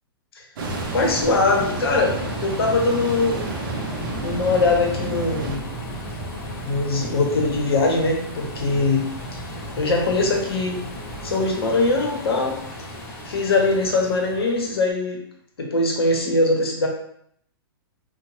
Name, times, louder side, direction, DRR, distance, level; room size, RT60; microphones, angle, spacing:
sound 1, 0.6-14.8, equal, 20° left, 0.4 m, -35 dB
sound 2, 0.6-5.6, right 3 dB, 60° right, 0.4 m, -32 dB
voice 1, 0.9-3.5 4.2-5.6 6.6-9.4 9.8-10.8 11.2-12.6 13.2-15.2 15.6-16.9, left 3 dB, 90° left, 1 dB, 0.7 m, -22 dB
sound 3, 3.7-11.3, right 2 dB, 55° left, 0.8 m, -39 dB
2.8 x 2.0 x 2.9 m, 0.68 s
hypercardioid pair, 155°, 13 cm